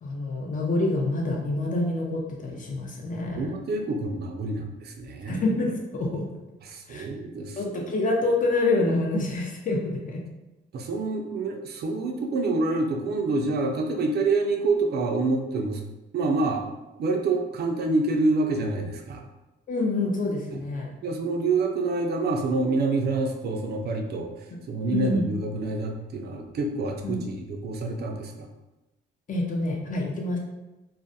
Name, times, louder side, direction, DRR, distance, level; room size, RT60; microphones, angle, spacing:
voice 1, 0.0-3.5 5.3-6.2 6.9-7.1 7.6-10.2 19.7-20.9 24.9-25.3 27.0-27.2 29.3-30.4, left 2 dB, 40° left, 0 dB, 0.6 m, -27 dB
voice 2, 3.3-5.4 6.6-7.6 10.7-15.8 16.1-16.6 17.0-19.2 20.5-20.6 21.0-24.3 24.7-28.5, right 3 dB, 55° right, 3 dB, 0.4 m, -27 dB
2.3 x 2.1 x 2.6 m, 1.0 s
cardioid pair, 90°, 20 cm